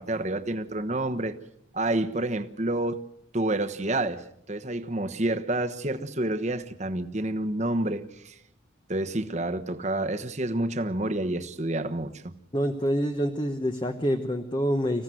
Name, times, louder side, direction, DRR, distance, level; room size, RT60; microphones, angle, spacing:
voice 1, 0.0-1.3 1.7-3.0 3.3-8.4 8.9-12.3, right 1 dB, 35° right, 1.2 m, -29 dB
voice 2, 12.5-15.0, equal, 25° left, 1.1 m, -26 dB
26.0 x 16.0 x 7.8 m
head